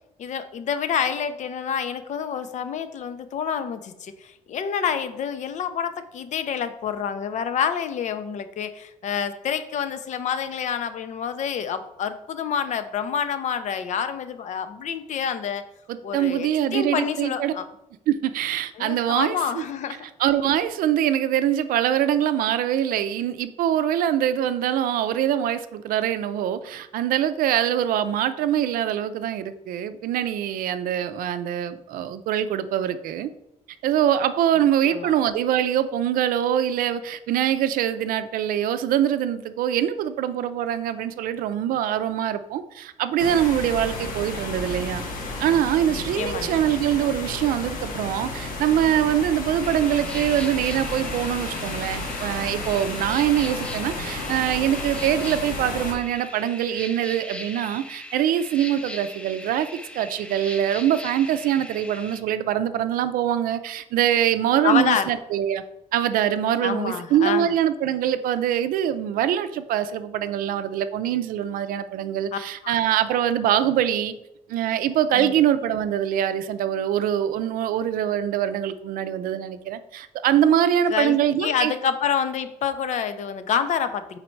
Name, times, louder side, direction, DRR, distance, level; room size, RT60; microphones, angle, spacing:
voice 1, 0.2-15.6 16.0-17.6 18.8-20.1 34.6-35.1 45.9-46.7 64.6-65.1 66.6-67.5 72.3-72.4 72.6-72.7 75.1-75.3 80.9-84.2, left 7 dB, 55° left, 11 dB, 0.6 m, -28 dB
voice 2, 15.9-17.5 18.1-19.4 20.2-33.3 33.8-45.1 45.4-59.7 60.0-65.6 65.9-74.1 74.5-81.7, right 10 dB, 85° right, 11 dB, 0.5 m, -23 dB
sound 1, 43.2-55.9, left 2 dB, 80° left, 1.3 m, -32 dB
sound 2, 49.6-62.2, left 1 dB, 10° left, 0.6 m, -39 dB
5.2 x 4.1 x 4.4 m, 0.86 s
cardioid pair, 125°, 14 cm